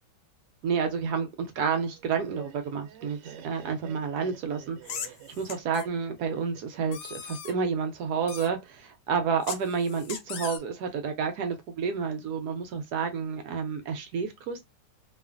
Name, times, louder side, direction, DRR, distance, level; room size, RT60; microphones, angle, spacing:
voice 1, 0.6-3.2 3.4-14.6, right 6 dB, 70° right, 1.0 m, -30 dB
Laughter, 1.9-7.0, right 9 dB, 85° right, 1.3 m, -49 dB
sound 1, 4.8-5.9 6.9-7.5 8.3-8.5 9.4-10.6, left 7 dB, 75° left, 1.1 m, -39 dB
2.8 x 2.4 x 2.3 m
omnidirectional pair, 1.9 m